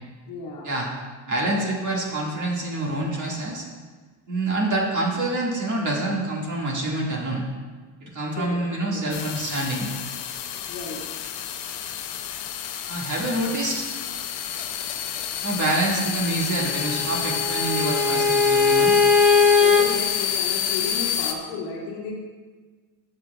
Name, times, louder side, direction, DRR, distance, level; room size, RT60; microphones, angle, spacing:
voice 1, 0.3-0.7 8.4-9.1 10.7-11.0 19.6-22.1, left 4 dB, 90° left, -3 dB, 2.0 m, -33 dB
voice 2, 1.3-3.7 4.3-7.4 8.0-9.9 12.9-13.9 15.4-19.0, right 2 dB, 35° right, -3 dB, 1.8 m, -26 dB
sound 1, 9.1-21.3, left 9 dB, 60° left, 0.9 m, -29 dB
Bowed string instrument, 16.7-19.9, left 4 dB, 5° right, 0.8 m, -19 dB
13.5 x 6.2 x 2.3 m, 1.4 s
supercardioid pair, 85°, 50 cm